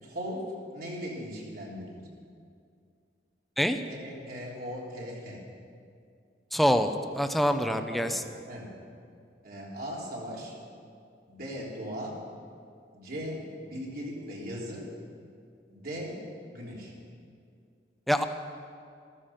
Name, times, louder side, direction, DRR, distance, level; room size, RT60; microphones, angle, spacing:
voice 1, 0.0-2.0 3.9-5.4 7.5-8.2 8.5-8.7 9.4-10.5 11.3-12.2 12.9-14.9 15.7-16.2 16.5-16.9, equal, 60° right, -3 dB, 3.4 m, -38 dB
voice 2, 6.5-6.9 7.1-8.2 18.1-18.2, equal, ahead, 7 dB, 0.7 m, -25 dB
14.0 x 13.5 x 5.8 m, 2.3 s
head